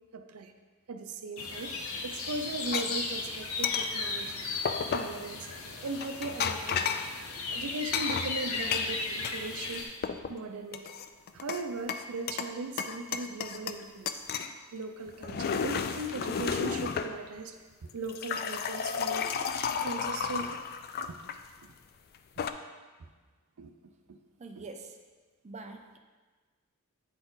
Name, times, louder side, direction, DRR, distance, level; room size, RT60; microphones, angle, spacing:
voice 1, 0.1-0.5 0.9-1.7 2.0-4.4 4.9-5.5 5.8-7.0 7.5-9.9 10.3-10.8 11.3-14.2 14.7-17.5 17.9-19.3 19.8-20.6 21.1-21.2 23.0-23.1 23.6-23.7 24.1-24.2, right 3 dB, 85° right, 6 dB, 0.5 m, -38 dB
sound 1, 1.4-9.8, left 3 dB, 75° left, 0.8 m, -36 dB
sound 2, 2.7-2.9 3.6-3.9 4.7-5.2 6.0-7.1 7.9-9.4 9.7-10.3 10.7-11.6 11.9-12.5 12.8-13.8 14.1-14.5 15.1-17.1 17.9-21.4 22.1-22.5, left 6 dB, 45° left, 0.3 m, -32 dB
voice 2, 24.4-25.0 25.4-26.0, right 3 dB, 30° right, 4 dB, 0.4 m, -44 dB
8.7 x 4.2 x 3.9 m, 1.4 s
head